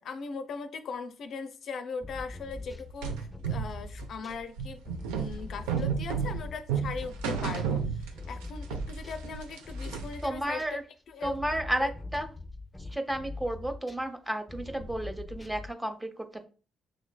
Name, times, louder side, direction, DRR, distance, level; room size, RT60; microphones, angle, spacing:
voice 1, 0.0-4.8 5.1-10.6 11.1-11.4, left 5 dB, 65° left, 8 dB, 0.4 m, -39 dB
sound 1, 2.0-7.8 8.1-10.8 11.2-14.1 14.5-15.7, left 3 dB, 15° left, 0.6 m, -42 dB
sound 2, 3.0-8.5 8.7-10.3, right 6 dB, 85° right, 0.5 m, -32 dB
voice 2, 10.2-10.8 11.2-12.3 12.8-16.5, right 1 dB, 10° right, 7 dB, 0.8 m, -32 dB
6.0 x 3.1 x 2.2 m, 0.37 s
hypercardioid pair, 55°, 0 cm